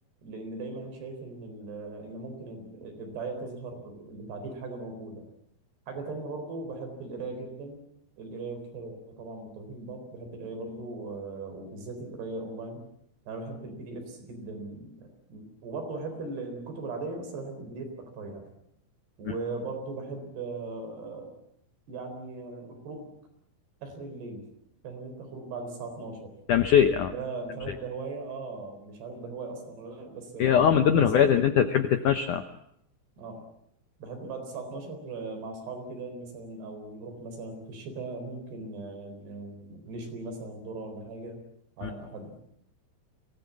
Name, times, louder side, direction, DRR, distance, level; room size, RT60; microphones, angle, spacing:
voice 1, 0.2-5.2 5.9-7.8 8.2-12.8 13.3-18.5 19.2-21.3 21.9-23.1 23.8-24.4 24.8-26.3 27.1-31.1 31.4-31.6 33.2-33.4 34.0-41.4 41.8-42.3, right 3 dB, 65° right, 5 dB, 6.1 m, -39 dB
voice 2, 26.5-27.1 30.4-32.4 41.8-41.9, left 8 dB, 80° left, 8 dB, 1.7 m, -21 dB
23.5 x 18.5 x 8.5 m, 0.74 s
omnidirectional pair, 5.1 m